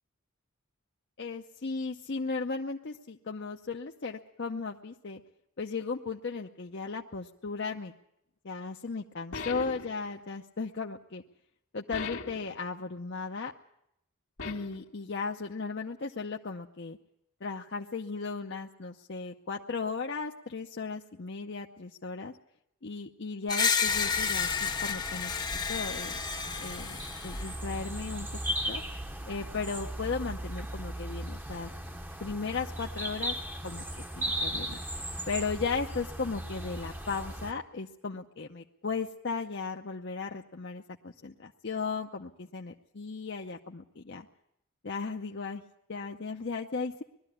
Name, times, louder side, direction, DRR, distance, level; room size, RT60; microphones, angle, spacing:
voice 1, 1.2-5.2 5.6-7.9 8.4-11.2 11.7-13.5 14.4-17.0 17.4-22.3 22.8-25.3 25.7-26.2 26.6-28.4 28.7-28.8 29.3-31.7 32.2-33.4 33.6-34.8 35.3-44.3 44.8-45.6 45.9-47.0, left 4 dB, 50° left, 2 dB, 0.7 m, -36 dB
sound 1, 9.3-10.0 11.9-12.5 14.4-14.8, left 4 dB, 85° left, 1.8 m, -38 dB
Screech, 23.5-27.5, left 6 dB, 20° left, 0.9 m, -31 dB
sound 2, 23.9-37.5, right 1 dB, 10° right, 0.8 m, -37 dB
20.0 x 13.0 x 9.9 m, 0.79 s
head